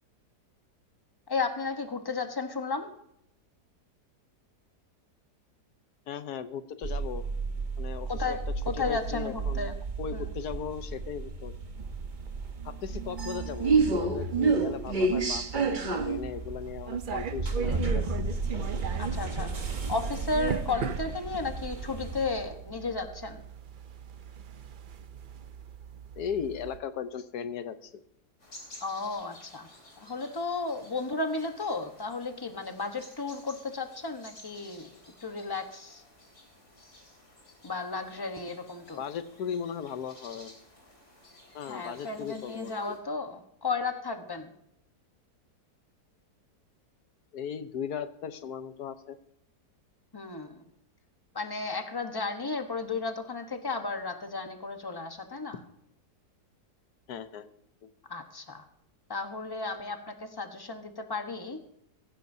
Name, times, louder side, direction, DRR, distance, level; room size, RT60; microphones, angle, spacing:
voice 1, 1.3-2.9 8.1-8.4 8.6-9.7 10.1-10.3 19.0-23.4 28.8-29.7 30.0-36.0 37.6-39.0 41.7-44.5 50.1-50.7 51.3-55.6 58.1-58.7 59.1-61.6, left 3 dB, 15° left, 6 dB, 0.9 m, -34 dB
voice 2, 6.1-7.2 7.8-8.4 8.7-11.5 12.6-15.8 16.0-18.0 26.2-28.0 39.0-40.5 41.5-43.0 47.3-49.2 57.1-57.5, left 7 dB, 70° left, 11 dB, 1.3 m, -37 dB
sound 1, 6.8-22.5, right 4 dB, 35° right, 1.0 m, -31 dB
sound 2, 11.8-26.8, right 7 dB, 75° right, 0.4 m, -40 dB
sound 3, 28.4-43.0, left 1 dB, 45° left, 3.9 m, -54 dB
16.5 x 15.5 x 2.7 m, 0.77 s
omnidirectional pair, 1.8 m